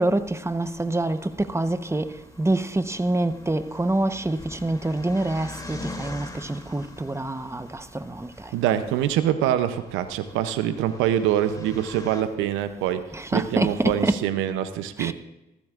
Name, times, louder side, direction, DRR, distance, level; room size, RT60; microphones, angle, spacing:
voice 1, 0.0-8.7 13.1-14.2 15.0-15.1, right 2 dB, 15° right, 1.0 m, -26 dB
sound 1, 0.6-12.2, left 2 dB, 20° left, 2.9 m, -44 dB
voice 2, 8.5-13.0 13.3-15.1, right 11 dB, 85° right, 0.7 m, -24 dB
20.0 x 14.5 x 2.5 m
hypercardioid pair, 40°, 20 cm